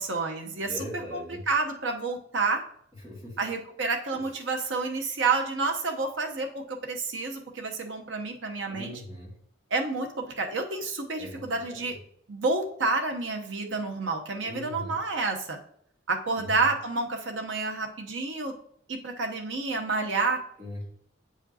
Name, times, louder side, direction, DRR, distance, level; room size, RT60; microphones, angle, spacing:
voice 1, 0.0-2.6 3.4-8.9 9.7-12.0 12.3-15.6 16.1-18.5 18.9-20.4, right 3 dB, 80° right, 3 dB, 0.9 m, -29 dB
voice 2, 0.6-1.4 3.0-3.4 4.1-4.2 8.7-9.3 11.2-11.9 14.4-15.0 16.4-16.5 20.6-20.9, left 1 dB, 20° right, -6 dB, 2.3 m, -40 dB
8.0 x 5.0 x 2.8 m, 0.66 s
head